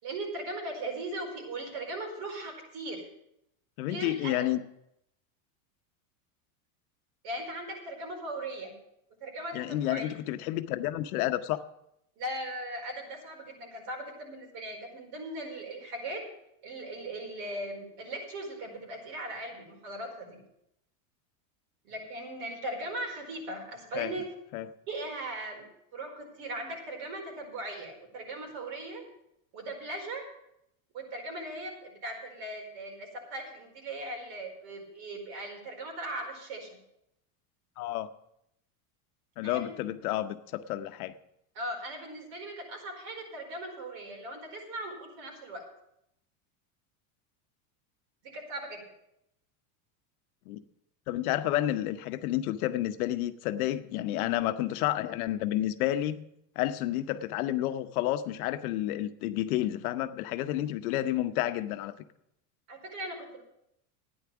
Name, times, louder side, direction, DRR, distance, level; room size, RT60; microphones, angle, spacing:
voice 1, 0.0-3.1 3.9-4.3 7.2-8.7 9.2-10.1 12.2-16.2 16.6-20.4 21.8-24.2 24.9-25.6 25.9-29.0 29.5-30.2 30.9-36.8 39.4-39.7 41.5-45.6 48.3-48.9 62.7-63.4, right 1 dB, 55° right, 2 dB, 4.8 m, -39 dB
voice 2, 3.8-4.6 9.5-11.6 23.9-24.1 24.5-24.7 37.8-38.1 39.4-41.1 50.5-50.6 51.1-56.2 56.6-61.9, left 14 dB, 75° left, 10 dB, 0.9 m, -30 dB
11.5 x 9.8 x 6.0 m, 0.78 s
supercardioid pair, 125°, 44 cm